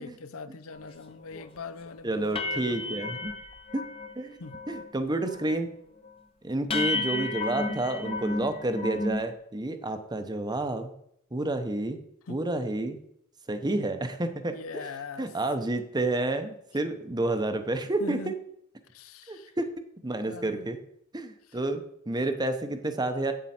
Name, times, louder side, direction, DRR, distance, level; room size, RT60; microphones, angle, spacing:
voice 1, 0.0-3.2 4.4-4.6 12.3-12.4 14.5-15.3 18.0-18.4 18.9-19.6 20.2-20.7 21.5-21.6, left 4 dB, 75° left, 0.6 m, -42 dB
sound 1, 0.8-0.9 1.3-1.6 1.9-2.0 2.3-4.2 4.4-4.9 5.2-5.6 6.0-6.1 6.7-9.3, left 2 dB, 25° left, 0.8 m, -33 dB
voice 2, 2.0-3.3 3.7-3.8 4.2-4.4 4.7-5.7 6.4-10.9 11.3-12.0 12.3-13.0 13.5-14.6 15.2-18.2 19.3-19.7 20.0-20.8 21.1-23.3, right 2 dB, 20° right, 0.7 m, -30 dB
8.3 x 7.5 x 4.3 m
head